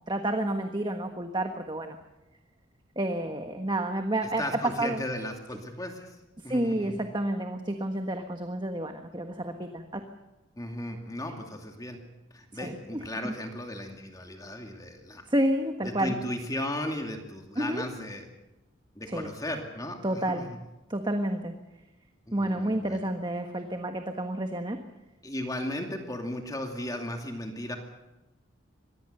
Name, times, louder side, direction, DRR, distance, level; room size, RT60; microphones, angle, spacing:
voice 1, 0.1-2.0 2.9-5.0 6.4-10.0 12.5-13.3 15.3-16.2 17.6-17.8 19.1-19.3 20.0-20.5 20.9-21.5 22.3-24.8, right 1 dB, 25° right, 5 dB, 1.4 m, -30 dB
voice 2, 4.4-6.2 6.4-6.9 10.6-12.0 12.3-15.3 15.8-18.3 19.0-20.6 22.3-23.0 25.2-27.8, left 1 dB, 20° left, 3 dB, 2.5 m, -36 dB
25.0 x 20.0 x 6.8 m, 1.0 s
head